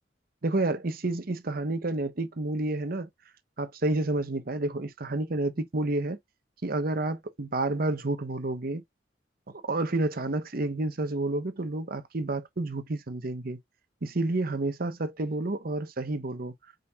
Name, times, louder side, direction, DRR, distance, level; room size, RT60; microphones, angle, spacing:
voice 1, 0.4-3.1 3.6-6.2 6.6-8.8 9.5-13.6 14.0-16.5, right 2 dB, 55° right, 0.9 m, -30 dB
5.1 x 4.2 x 2.3 m
head